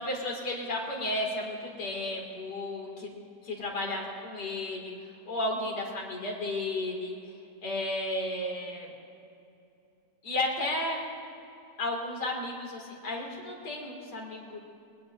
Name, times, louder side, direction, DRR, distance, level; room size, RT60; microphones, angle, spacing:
voice 1, 0.0-3.1 3.4-4.9 5.3-7.2 7.6-8.9 10.2-11.0 11.8-14.6, left 1 dB, 80° left, -1 dB, 3.0 m, -33 dB
21.0 x 20.5 x 2.6 m, 2.7 s
omnidirectional pair, 1.8 m